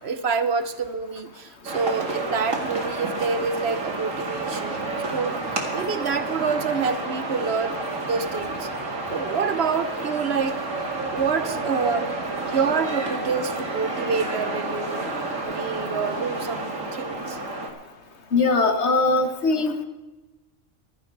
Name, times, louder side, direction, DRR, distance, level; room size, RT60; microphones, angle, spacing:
voice 1, 0.0-4.8 5.1-5.4 5.7-8.7 9.1-10.6 11.1-12.1 12.4-15.1 15.5-17.4, right 5 dB, 60° right, 11 dB, 1.0 m, -27 dB
sound 1, 1.6-17.7, right 2 dB, 85° right, 2.5 m, -30 dB
voice 2, 18.3-19.8, left 3 dB, 60° left, 7 dB, 1.5 m, -21 dB
15.0 x 13.0 x 4.7 m, 1.1 s
omnidirectional pair, 1.3 m